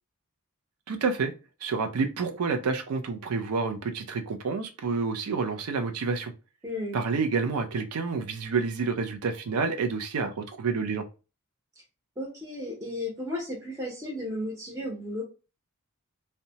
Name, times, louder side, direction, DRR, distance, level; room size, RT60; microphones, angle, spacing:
voice 1, 0.9-1.3 1.6-6.3 6.9-11.1, right 4 dB, 85° right, 0.4 m, -29 dB
voice 2, 6.6-7.0 12.2-15.2, left 1 dB, 15° right, 0.7 m, -34 dB
2.7 x 2.1 x 2.8 m
head